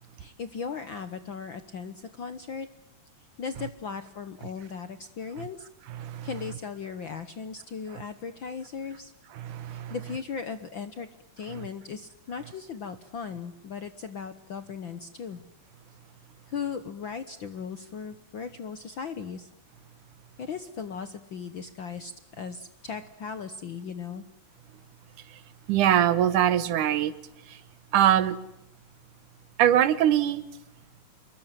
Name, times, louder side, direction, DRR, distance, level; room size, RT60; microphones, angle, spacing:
voice 1, 0.2-2.7 3.4-5.7 6.2-9.1 9.7-11.1 11.4-15.4 16.5-19.5 20.4-24.2, left 6 dB, 60° left, 11 dB, 1.3 m, -37 dB
voice 2, 5.9-6.3 9.3-9.9 11.6-11.7 25.3-25.4 25.7-27.1 27.5-27.6 27.9-28.4 29.6-30.4, right 11 dB, 80° right, 15 dB, 2.7 m, -23 dB
27.0 x 22.5 x 7.7 m, 0.85 s
omnidirectional pair, 3.6 m